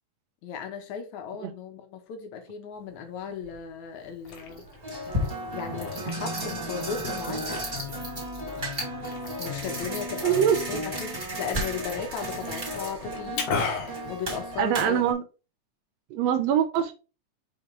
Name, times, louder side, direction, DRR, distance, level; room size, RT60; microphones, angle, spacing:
voice 1, 0.4-4.6 5.5-7.5 9.4-13.5 14.1-15.0, left 6 dB, 75° left, 2.5 m, -36 dB
sound 1, 3.4-3.6 4.3-15.1, equal, 15° right, 2.1 m, -33 dB
Liquid, 4.0-15.0, left 5 dB, 90° left, 3.0 m, -38 dB
voice 2, 10.2-10.6 14.6-15.2 16.1-16.9, right 9 dB, 75° right, 1.6 m, -23 dB
6.0 x 5.1 x 3.3 m
omnidirectional pair, 3.5 m